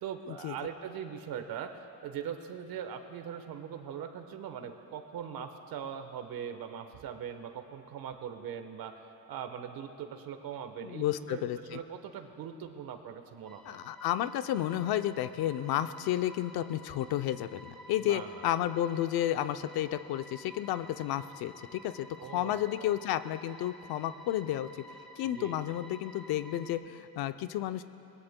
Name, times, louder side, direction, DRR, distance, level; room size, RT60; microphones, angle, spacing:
voice 1, 0.0-9.0 9.3-13.8 17.9-18.5 22.2-23.0 25.3-25.5, right 8 dB, 75° right, 7 dB, 1.2 m, -41 dB
voice 2, 10.8-11.8 13.7-22.1 22.3-24.7 25.2-27.8, left 12 dB, 80° left, 11 dB, 0.6 m, -32 dB
sound 1, 13.4-26.7, equal, ahead, 1.4 m, -52 dB
22.5 x 19.5 x 2.2 m, 2.9 s
cardioid pair, 105°, 36 cm